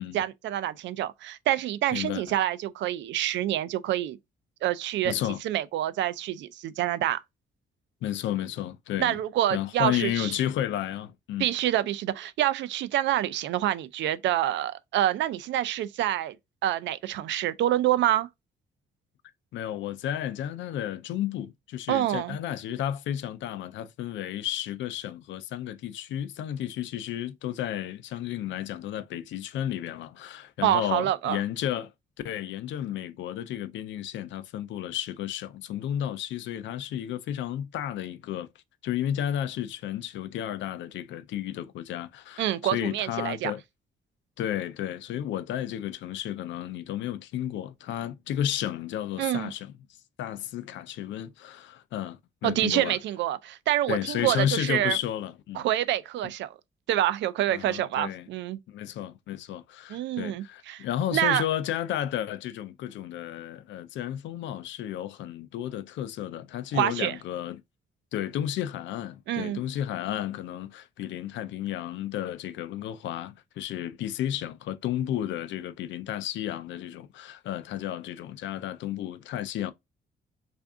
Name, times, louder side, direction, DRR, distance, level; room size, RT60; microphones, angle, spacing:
voice 1, 0.1-4.2 4.6-5.1 5.4-7.2 9.0-10.4 11.4-16.4 16.6-18.3 21.9-22.4 30.6-31.4 42.4-43.5 49.2-49.5 52.4-55.0 55.5-56.5 56.9-58.6 59.9-60.8 61.1-61.4 66.7-67.2 69.3-69.6, right 13 dB, 80° right, 0.4 m, -27 dB
voice 2, 1.9-2.2 5.0-5.4 8.0-9.2 9.5-11.5 19.5-31.9 32.2-38.5 38.8-43.6 44.4-49.7 50.2-53.0 53.9-55.6 57.5-58.3 58.7-67.6 68.1-79.7, left 11 dB, 80° left, 0.5 m, -32 dB
3.4 x 2.5 x 3.6 m
cardioid pair, 160°, 19 cm